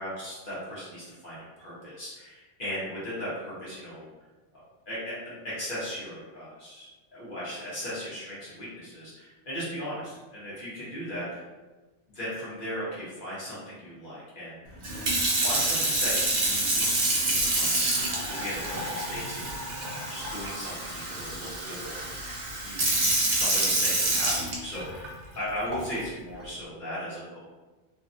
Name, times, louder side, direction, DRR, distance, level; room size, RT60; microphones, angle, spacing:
voice 1, 0.0-4.1 4.9-11.4 12.1-14.8 15.4-19.7 20.1-22.3 22.6-27.4, equal, 45° left, -9 dB, 1.3 m, -37 dB
Sink (filling or washing) / Fill (with liquid), 14.8-25.1 25.7-26.0, right 2 dB, 50° right, 0.6 m, -27 dB
2.9 x 2.7 x 2.5 m, 1.2 s
omnidirectional pair, 1.2 m